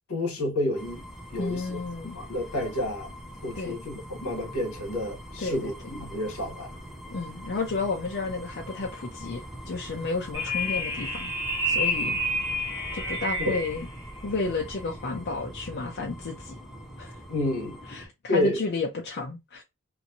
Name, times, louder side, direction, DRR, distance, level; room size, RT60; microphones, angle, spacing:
voice 1, 0.1-1.0 1.3-1.8 2.1-3.1 3.4-6.7 13.4-13.5 17.3-17.8 18.3-18.6, left 1 dB, 75° left, 1.3 m, -29 dB
sound 1, 0.8-18.1, equal, ahead, 0.5 m, -42 dB
voice 2, 1.4-2.2 3.6-3.8 5.4-5.7 7.1-11.3 11.6-12.2 12.9-13.9 14.2-16.6 17.0-17.2 17.9-19.6, left 3 dB, 50° left, 0.5 m, -32 dB
sound 2, 10.3-13.8, left 1 dB, 25° left, 1.1 m, -29 dB
2.9 x 2.6 x 2.6 m
head